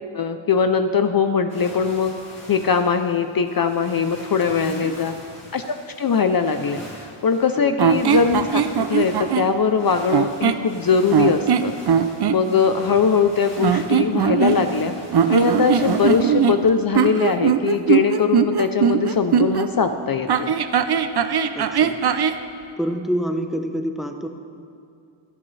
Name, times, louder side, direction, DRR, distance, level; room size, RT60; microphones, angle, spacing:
voice 1, 0.1-2.2 2.5-5.1 5.5-11.7 12.3-14.9 15.3-20.5, left 6 dB, 45° left, 8 dB, 0.5 m, -21 dB
sound 1, 1.5-16.8, left 1 dB, 30° left, 3.3 m, -42 dB
sound 2, 7.8-9.5 10.1-10.7 11.1-12.4 13.6-14.8 15.1-19.7 20.3-22.4, right 8 dB, 50° right, 0.6 m, -20 dB
voice 2, 21.5-22.0 22.8-24.3, equal, ahead, 5 dB, 0.7 m, -27 dB
24.5 x 8.6 x 3.2 m, 2.5 s
wide cardioid pair, 125°, 50 cm